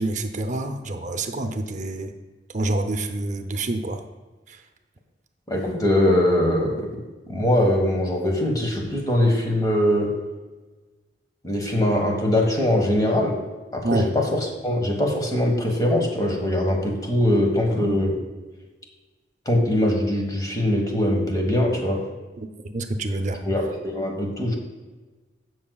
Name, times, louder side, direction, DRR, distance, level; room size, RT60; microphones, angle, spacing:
voice 1, 0.0-2.1 2.5-4.0 4.5-4.6 13.8-14.1 22.4-23.4, right 2 dB, 45° right, 6 dB, 0.7 m, -27 dB
voice 2, 5.5-10.1 11.4-13.4 13.7-18.2 19.4-22.0 23.4-24.5, left 1 dB, 20° left, 1 dB, 1.5 m, -22 dB
16.0 x 6.3 x 2.4 m, 1.3 s
head